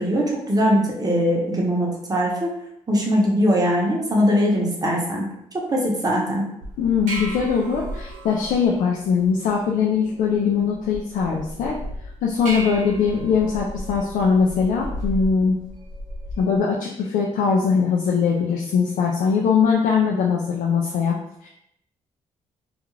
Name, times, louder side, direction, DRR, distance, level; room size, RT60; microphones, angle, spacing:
voice 1, 0.0-2.5 2.9-5.2 5.5-6.4, equal, 25° right, -2 dB, 0.8 m, -21 dB
sound 1, 6.6-16.6, equal, 65° right, 0.9 m, -35 dB
voice 2, 6.8-11.8 12.2-15.6 16.4-21.2 21.4-21.5, left 6 dB, 75° left, -1 dB, 0.4 m, -21 dB
2.4 x 2.3 x 3.1 m, 0.77 s
supercardioid pair, 60°, 14 cm